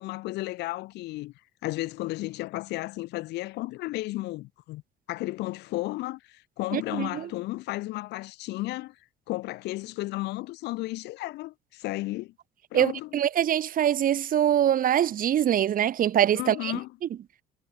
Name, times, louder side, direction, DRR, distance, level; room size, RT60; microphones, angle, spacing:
voice 1, 0.0-1.3 1.6-4.8 5.1-9.0 9.3-12.3 12.7-13.2 16.3-16.9, left 19 dB, 85° left, 3.7 m, -33 dB
voice 2, 6.7-7.3 12.7-16.7, right 10 dB, 55° right, 3.8 m, -24 dB
cardioid pair, 110°, 17 cm